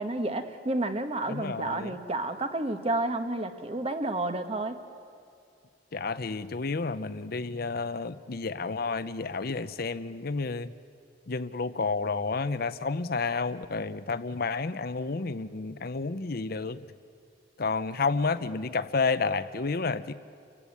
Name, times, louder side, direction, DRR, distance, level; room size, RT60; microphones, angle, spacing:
voice 1, 0.0-4.8, right 2 dB, 35° right, 8 dB, 1.4 m, -30 dB
voice 2, 1.3-1.9 5.9-10.7 11.3-16.9 17.6-20.1, left 4 dB, 60° left, 12 dB, 0.7 m, -30 dB
29.5 x 15.5 x 8.6 m, 2.4 s
head